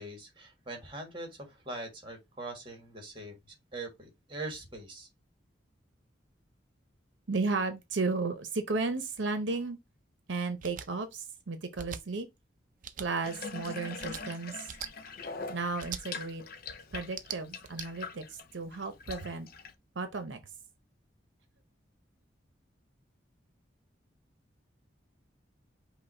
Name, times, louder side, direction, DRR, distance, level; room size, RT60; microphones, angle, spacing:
voice 1, 0.0-5.1, right 2 dB, 25° right, 1.4 m, -42 dB
voice 2, 7.3-9.8 10.3-12.3 13.0-14.7 15.5-16.4 16.9-19.5 20.0-20.4, right 3 dB, 80° right, 0.7 m, -34 dB
sound 1, 10.6-10.9 11.7-12.0 12.8-13.1 14.0-14.2 14.7-14.9 15.8-16.0 17.0-17.9, right 8 dB, 45° right, 0.4 m, -41 dB
Water tap faucet / Bathtub (filling or washing), 13.2-19.7, left 4 dB, 50° left, 0.5 m, -43 dB
5.5 x 2.2 x 4.2 m
head